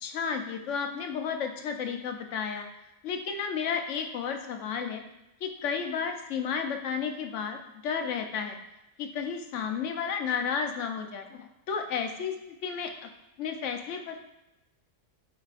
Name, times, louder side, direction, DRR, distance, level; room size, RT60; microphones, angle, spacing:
voice 1, 0.0-2.7 3.0-5.0 5.4-8.6 9.0-12.4 12.6-13.1 13.4-14.3, left 6 dB, 80° left, 5 dB, 1.0 m, -32 dB
8.0 x 4.8 x 2.4 m, 0.95 s
omnidirectional pair, 1.2 m